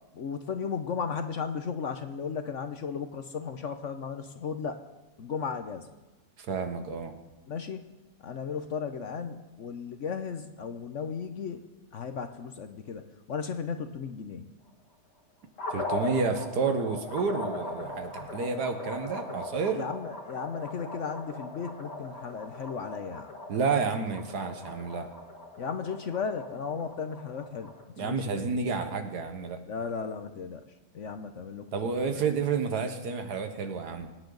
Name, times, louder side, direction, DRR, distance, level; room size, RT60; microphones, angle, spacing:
voice 1, 0.1-4.8 5.2-5.9 7.5-7.8 8.2-11.6 11.9-14.5 19.7-23.3 25.6-28.4 29.7-30.7 30.9-32.2, left 6 dB, 55° left, 8 dB, 1.0 m, -35 dB
voice 2, 6.4-7.1 15.7-19.8 23.5-25.1 28.0-29.6 31.7-34.1, right 5 dB, 75° right, 7 dB, 1.7 m, -30 dB
sound 1, 15.6-27.8, left 2 dB, 80° left, 2.4 m, -39 dB
24.0 x 9.9 x 3.9 m, 1.1 s
omnidirectional pair, 1.8 m